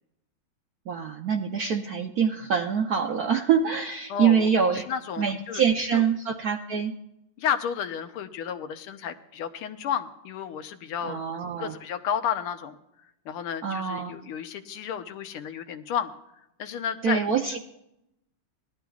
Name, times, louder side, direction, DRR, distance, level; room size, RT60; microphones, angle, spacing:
voice 1, 0.9-4.9 5.2-6.9 11.0-11.7 13.6-14.1 17.0-17.6, right 7 dB, 70° right, 3 dB, 0.9 m, -25 dB
voice 2, 4.1-4.5 4.7-5.6 5.9-6.0 7.4-11.2 11.6-16.1 16.6-17.2, left 8 dB, 85° left, 8 dB, 1.7 m, -32 dB
18.5 x 12.0 x 2.3 m, 0.84 s
omnidirectional pair, 2.3 m